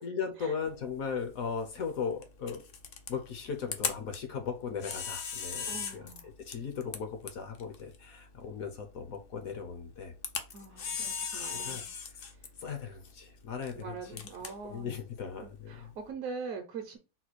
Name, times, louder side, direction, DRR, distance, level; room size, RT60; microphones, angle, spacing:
voice 1, 0.0-2.6 3.1-10.1 10.8-12.2 12.6-15.9, left 6 dB, 65° left, 1.1 m, -38 dB
Camera, 0.6-16.1, left 6 dB, 85° left, 0.5 m, -41 dB
voice 2, 5.7-6.3 10.5-11.9 13.7-15.0 15.4-17.0, right 5 dB, 65° right, 1.0 m, -42 dB
4.0 x 2.2 x 4.4 m
omnidirectional pair, 1.7 m